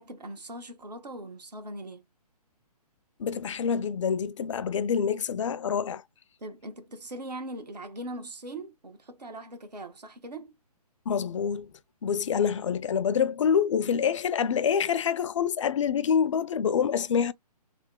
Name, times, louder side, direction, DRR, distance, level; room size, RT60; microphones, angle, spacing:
voice 1, 0.0-2.0 6.4-10.6, right 1 dB, 85° right, 1.2 m, -40 dB
voice 2, 3.2-6.0 11.1-11.7 12.0-17.3, left 7 dB, 50° left, 0.4 m, -26 dB
3.3 x 2.2 x 3.6 m
figure-of-eight pair, 140°, 20 cm